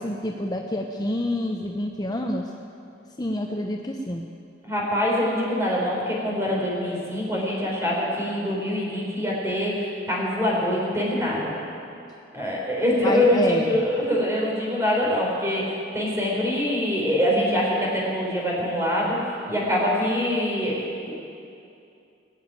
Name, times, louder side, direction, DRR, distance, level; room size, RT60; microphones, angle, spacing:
voice 1, 0.0-2.5 3.2-4.3 13.0-13.8, left 1 dB, 20° left, 2 dB, 0.7 m, -27 dB
voice 2, 4.6-11.5 12.3-21.1, left 1 dB, 15° right, -4 dB, 4.2 m, -24 dB
20.0 x 7.2 x 9.2 m, 2.6 s
head